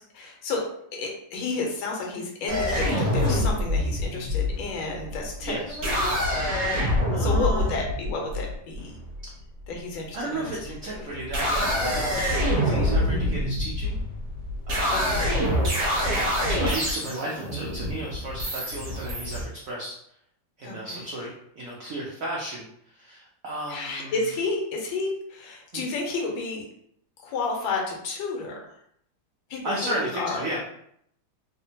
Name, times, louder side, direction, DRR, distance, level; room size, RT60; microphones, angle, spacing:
voice 1, 0.1-0.6 1.0-6.1 7.1-8.9 9.7-11.1 12.3-12.4 14.9-15.4 20.6-21.0 23.7-26.6 27.2-28.6 29.5-30.6, left 3 dB, 90° left, 0 dB, 1.5 m, -31 dB
sound 1, 2.5-9.2 10.3-10.7 11.2-19.4, left 1 dB, 45° right, 1.0 m, -26 dB
voice 2, 5.4-5.8 7.1-7.8 10.1-14.0 14.7-15.7 16.5-19.9 20.6-21.3 21.6-22.7 22.9-24.1 25.7-25.9 29.6-30.6, right 1 dB, 85° right, -4 dB, 0.7 m, -34 dB
3.3 x 2.1 x 2.7 m, 0.71 s
omnidirectional pair, 2.1 m